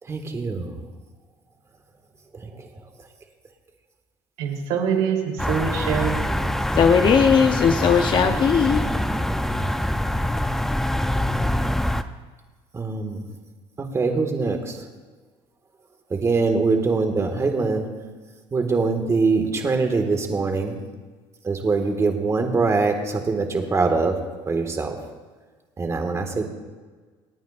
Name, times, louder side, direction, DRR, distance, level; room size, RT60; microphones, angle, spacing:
voice 1, 0.1-0.7 9.3-9.7 12.7-13.2 13.8-14.8 16.1-17.9 18.5-20.7 21.4-24.2 24.5-24.9 25.8-26.4, right 4 dB, 25° right, 4 dB, 1.8 m, -23 dB
voice 2, 4.4-6.5, right 7 dB, 80° right, 0 dB, 3.4 m, -25 dB
sound 1, 5.4-12.0, left 1 dB, 5° left, 0.5 m, -24 dB
voice 3, 6.7-8.8, left 6 dB, 40° left, 6 dB, 0.8 m, -18 dB
27.5 x 9.3 x 2.5 m, 1.4 s
cardioid pair, 120°, 12 cm